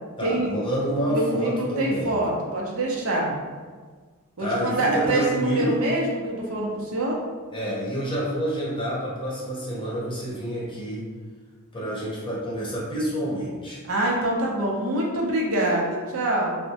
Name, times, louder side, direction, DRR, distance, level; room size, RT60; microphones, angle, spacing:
voice 1, 0.2-2.1 4.4-5.8 7.5-11.1 11.7-13.8, equal, 25° left, -6 dB, 0.7 m, -28 dB
voice 2, 1.1-3.3 4.4-7.2 13.8-16.6, right 1 dB, 70° right, -2 dB, 0.6 m, -25 dB
3.4 x 2.1 x 2.8 m, 1.5 s
head